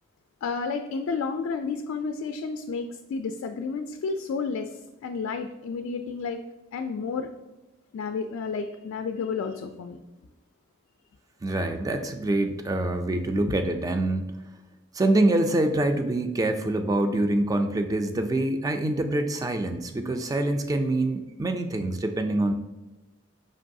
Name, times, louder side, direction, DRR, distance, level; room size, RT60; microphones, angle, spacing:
voice 1, 0.4-6.4 6.7-7.3 7.9-10.0, left 5 dB, 90° left, 5 dB, 0.3 m, -31 dB
voice 2, 11.4-14.3 14.9-22.5, right 1 dB, 20° right, 6 dB, 0.3 m, -25 dB
5.2 x 3.0 x 2.6 m, 1.1 s
head